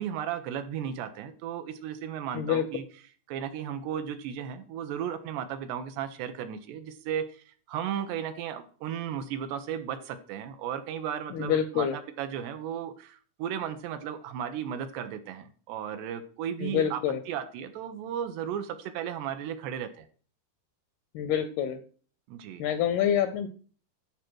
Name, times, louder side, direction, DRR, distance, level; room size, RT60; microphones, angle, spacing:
voice 1, 0.0-2.8 3.3-11.9 12.2-17.0 17.3-20.1 22.3-22.6, right 9 dB, 75° right, 9 dB, 2.9 m, -35 dB
voice 2, 2.3-2.7 11.3-12.0 16.6-17.2 21.1-21.8 22.6-23.5, left 9 dB, 80° left, 11 dB, 2.3 m, -27 dB
13.0 x 5.1 x 6.1 m, 0.42 s
omnidirectional pair, 5.2 m